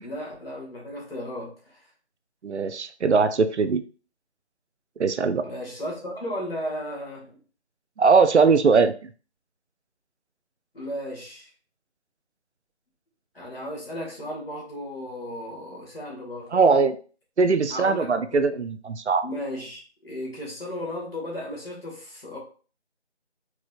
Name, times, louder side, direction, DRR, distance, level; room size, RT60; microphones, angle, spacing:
voice 1, 0.0-1.8 5.4-7.4 10.7-11.5 13.3-16.5 17.7-18.6 19.2-22.4, left 1 dB, 55° left, -3 dB, 2.0 m, -35 dB
voice 2, 2.4-3.8 5.0-5.4 8.0-8.9 16.5-17.0 17.4-19.3, right 4 dB, 75° right, 12 dB, 0.5 m, -20 dB
4.6 x 3.0 x 2.4 m, 0.39 s
figure-of-eight pair, 175°, 35 cm